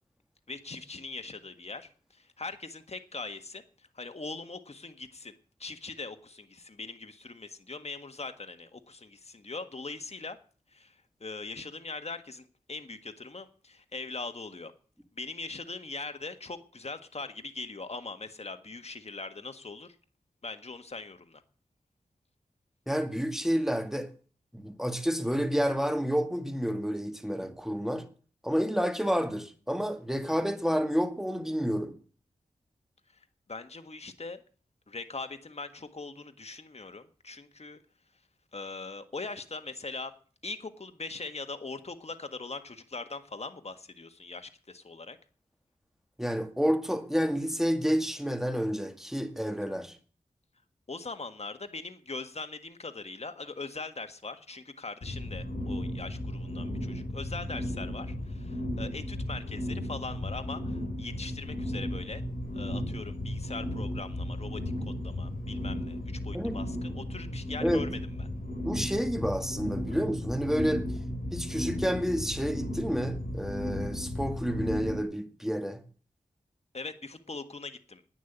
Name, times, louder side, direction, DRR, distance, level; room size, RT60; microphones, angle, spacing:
voice 1, 0.5-5.3 5.6-10.4 10.7-14.7 15.1-19.9 20.4-21.4 33.1-34.4 34.9-37.8 38.5-40.1 40.4-45.2 50.9-62.2 62.5-68.3 76.7-78.0, left 3 dB, 45° left, 1.6 m, -41 dB
voice 2, 22.9-24.1 24.5-28.1 28.4-32.0 46.2-50.0 66.3-66.6 67.6-67.8 68.6-70.9 71.3-75.8, equal, 5° right, 2.2 m, -29 dB
sound 1, 55.0-75.0, left 1 dB, 70° left, 5.6 m, -35 dB
11.0 x 9.7 x 9.9 m
cardioid pair, 55°, 15 cm